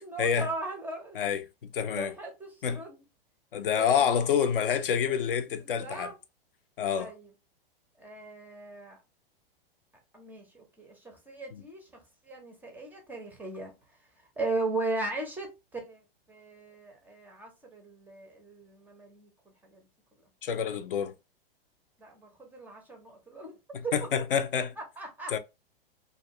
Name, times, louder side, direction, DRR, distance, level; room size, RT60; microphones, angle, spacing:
voice 1, 0.0-1.2 1.9-3.0 3.8-4.1 5.1-5.2 5.6-6.2 7.0-7.3 8.0-9.0 10.1-11.9 12.2-13.7 14.4-16.0 16.3-19.3 19.7-19.8 22.0-23.5 23.8-23.9 24.8-25.3, right 3 dB, 5° right, 0.4 m, -37 dB
voice 2, 1.7-2.1 2.6-2.8 3.5-6.1 6.8-7.1 11.5-11.6 20.4-21.1 23.7-24.7 25.3-25.4, left 7 dB, 65° left, 0.5 m, -27 dB
2.3 x 2.2 x 2.7 m
figure-of-eight pair, 105°, 29 cm